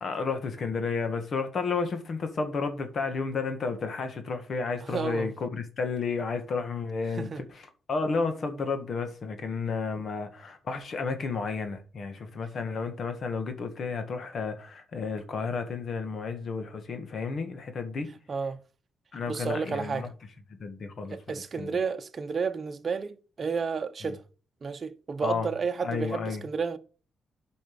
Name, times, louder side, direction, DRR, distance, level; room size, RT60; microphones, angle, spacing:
voice 1, 0.0-18.1 19.1-20.1 20.6-21.8 24.0-24.1 25.2-25.5 25.8-26.4, left 4 dB, 50° left, 1.8 m, -32 dB
voice 2, 4.8-5.3 7.1-7.4 18.3-18.6 19.3-20.1 21.1-24.2 24.6-26.8, right 5 dB, 40° right, 0.9 m, -31 dB
8.9 x 5.4 x 6.9 m
cardioid pair, 95°, 0 cm